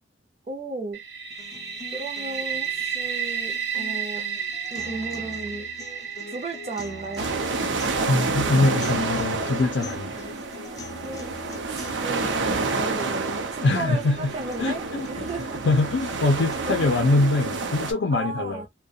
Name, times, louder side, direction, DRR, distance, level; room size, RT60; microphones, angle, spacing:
voice 1, 0.5-1.0 1.9-4.2 4.7-5.7 6.3-7.3 11.0-11.4 11.7-15.7 16.6-16.9 18.1-18.7, right 3 dB, 35° right, 0.5 m, -35 dB
sound 1, 0.9-10.6, right 7 dB, 65° right, 1.0 m, -33 dB
sound 2, 1.3-17.3, left 3 dB, 20° left, 0.4 m, -44 dB
sound 3, 7.2-17.9, right 3 dB, 80° right, 0.6 m, -29 dB
voice 2, 8.1-10.2 13.6-14.3 14.6-15.3 15.6-18.7, left 2 dB, 75° left, 0.5 m, -23 dB
2.3 x 2.1 x 2.6 m
head